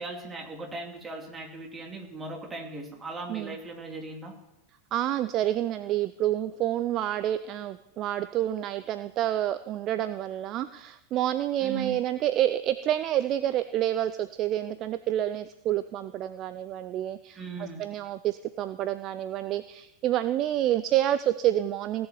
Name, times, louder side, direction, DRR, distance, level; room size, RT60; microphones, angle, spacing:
voice 1, 0.0-4.3 11.6-12.0 17.4-17.8, right 3 dB, 15° right, 1 dB, 2.8 m, -38 dB
voice 2, 4.9-22.1, right 12 dB, 35° right, 13 dB, 0.5 m, -28 dB
17.0 x 7.0 x 7.8 m, 0.91 s
figure-of-eight pair, 90°, 0 cm